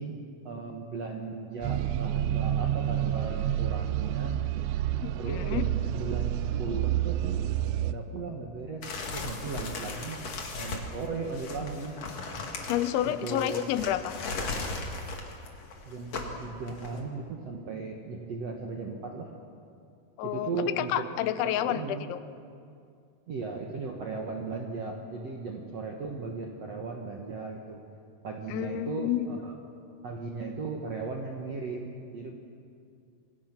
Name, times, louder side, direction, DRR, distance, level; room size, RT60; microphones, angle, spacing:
voice 1, 0.0-4.3 5.2-8.8 9.1-10.2 10.5-12.0 13.0-13.7 15.8-19.3 20.2-21.1 21.4-22.1 23.3-27.8 28.2-29.5 30.0-32.3, right 4 dB, 65° right, 0 dB, 1.6 m, -37 dB
sound 1, 1.6-7.9, right 12 dB, 85° right, 3.0 m, -29 dB
voice 2, 5.0-5.6 12.7-14.1 20.2-22.2 28.5-29.4, left 12 dB, 85° left, 12 dB, 3.2 m, -30 dB
sound 2, 8.8-17.0, left 3 dB, 45° left, 2.5 m, -37 dB
26.5 x 22.0 x 6.1 m, 2.4 s
omnidirectional pair, 5.3 m